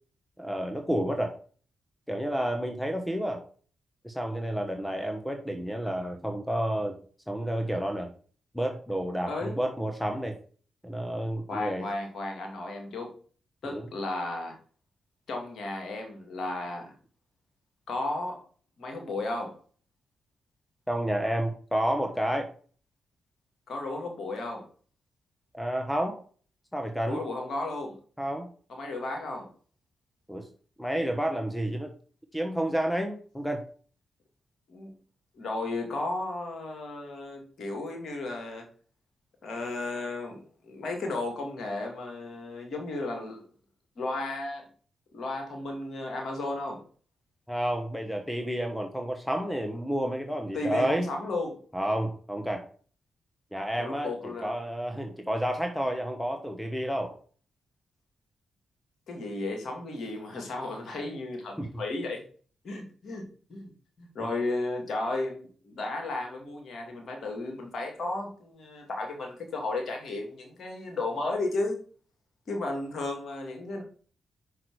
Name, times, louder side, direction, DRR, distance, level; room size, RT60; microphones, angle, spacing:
voice 1, 0.4-1.4 2.1-3.4 4.0-7.0 7.3-8.1 8.5-10.4 10.8-11.9 13.7-13.8 20.9-22.5 25.5-26.2 26.7-27.2 28.2-28.5 30.3-30.5 30.8-31.9 32.3-33.6 47.5-51.1 51.7-52.7 53.5-57.2 61.6-61.7, right 1 dB, 5° left, 1.2 m, -30 dB
voice 2, 11.5-13.2 13.6-14.6 15.3-16.9 17.9-18.4 18.8-19.6 23.7-24.7 27.1-28.0 28.7-29.5 34.7-34.9 35.3-38.7 39.4-43.5 44.0-44.7 45.1-46.8 50.5-51.6 53.8-54.5 59.1-62.2 62.6-63.7 64.0-71.8 72.5-73.8, left 2 dB, 60° left, 2.2 m, -34 dB
5.7 x 4.9 x 4.8 m
hypercardioid pair, 40°, 0 cm